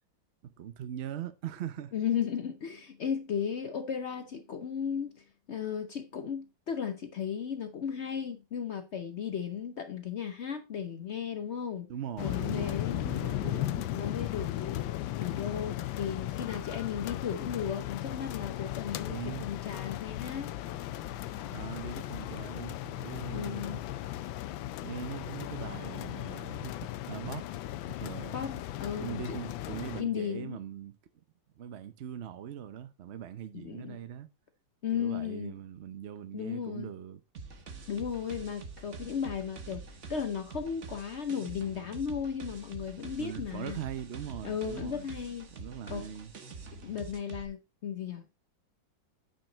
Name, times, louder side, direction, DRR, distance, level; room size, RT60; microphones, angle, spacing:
voice 1, 0.4-1.9 11.9-13.9 19.1-19.5 21.5-23.8 24.8-27.5 27.9-28.4 29.0-31.2 31.6-34.3 34.9-37.2 43.2-45.1 45.5-46.3, right 9 dB, 70° right, 0.6 m, -41 dB
voice 2, 1.9-11.9 12.2-13.0 13.9-14.8 15.2-20.5 23.3-23.8 28.3-29.4 29.7-30.6 33.5-34.0 34.8-35.5 36.3-36.9 37.9-39.8 40.1-43.8 44.4-45.5 45.9-46.0 46.8-48.3, left 7 dB, 70° left, 0.6 m, -35 dB
sound 1, 12.2-30.0, left 14 dB, 85° left, 1.4 m, -36 dB
sound 2, 37.3-47.4, right 4 dB, 45° right, 1.3 m, -46 dB
8.9 x 5.7 x 3.9 m
omnidirectional pair, 2.1 m